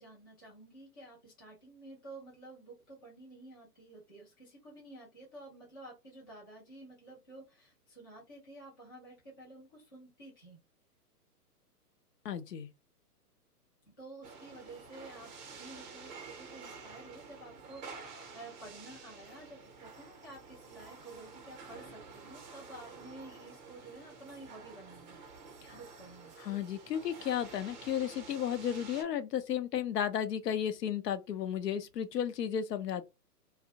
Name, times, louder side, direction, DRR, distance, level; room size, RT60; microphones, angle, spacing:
voice 1, 0.0-10.6 13.9-25.2 25.7-26.3, right 2 dB, 15° left, 0.3 m, -51 dB
voice 2, 12.2-12.7 26.4-33.1, left 9 dB, 80° left, 0.6 m, -33 dB
sound 1, 14.2-29.0, right 4 dB, 30° right, 0.6 m, -50 dB
2.5 x 2.0 x 2.7 m
hypercardioid pair, 130°, 47 cm